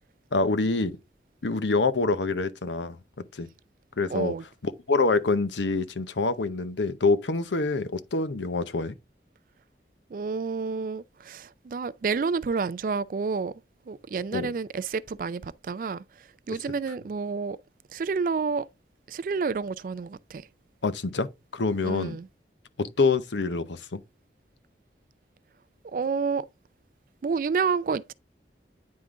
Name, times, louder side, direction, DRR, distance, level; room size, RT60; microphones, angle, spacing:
voice 1, 0.3-1.0 1.4-3.0 3.3-3.5 4.0-4.3 4.6-8.9 14.3-14.5 20.8-22.2 22.8-24.0, left 3 dB, 90° left, 0.8 m, -26 dB
voice 2, 4.1-4.4 10.1-13.5 13.9-16.0 16.5-17.6 17.9-18.7 19.1-20.5 21.8-22.3 25.9-26.5 27.2-28.1, right 5 dB, 50° right, 0.3 m, -29 dB
9.6 x 3.7 x 3.6 m
head